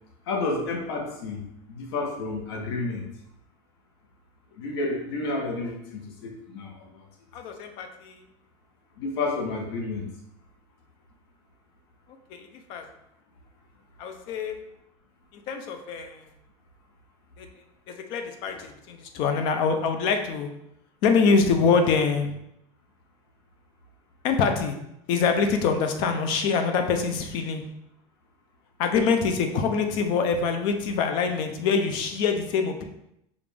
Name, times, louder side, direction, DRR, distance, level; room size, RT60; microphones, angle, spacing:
voice 1, 0.3-3.1 4.5-7.0 9.0-10.1, left 3 dB, 65° left, 1 dB, 1.0 m, -31 dB
voice 2, 7.3-8.2 12.3-12.8 14.0-14.6 15.5-16.2 17.4-17.5 17.9-20.5 21.0-22.4 24.2-24.8 25.1-27.6 28.8-32.8, left 5 dB, 35° left, 6 dB, 0.4 m, -25 dB
5.1 x 2.4 x 3.3 m, 0.80 s
supercardioid pair, 180°, 15 cm